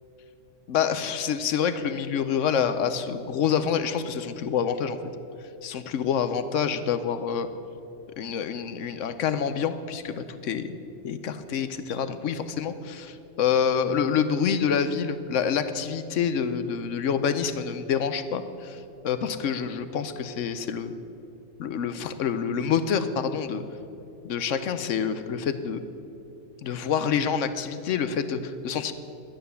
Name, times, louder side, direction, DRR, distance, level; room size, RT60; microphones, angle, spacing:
voice 1, 0.7-5.0 5.6-7.5 8.2-10.8 11.0-20.9 21.6-23.6 24.2-25.8 26.6-28.9, left 7 dB, 85° left, 11 dB, 1.1 m, -27 dB
11.5 x 9.8 x 6.9 m, 2.7 s
omnidirectional pair, 1.3 m